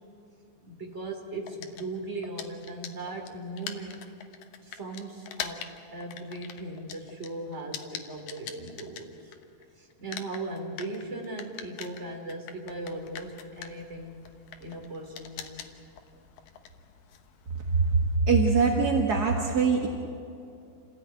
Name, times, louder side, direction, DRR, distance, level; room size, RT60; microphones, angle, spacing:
voice 1, 0.6-4.0 4.6-9.3 9.8-14.2 14.6-15.7 17.8-18.0, right 2 dB, 20° right, 2 dB, 3.0 m, -38 dB
sound 1, 1.5-9.6 9.9-18.2, left 9 dB, 75° left, 2.8 m, -43 dB
voice 2, 18.3-19.9, right 4 dB, 45° right, 1 dB, 1.4 m, -23 dB
28.0 x 16.5 x 9.1 m, 2.7 s
omnidirectional pair, 4.0 m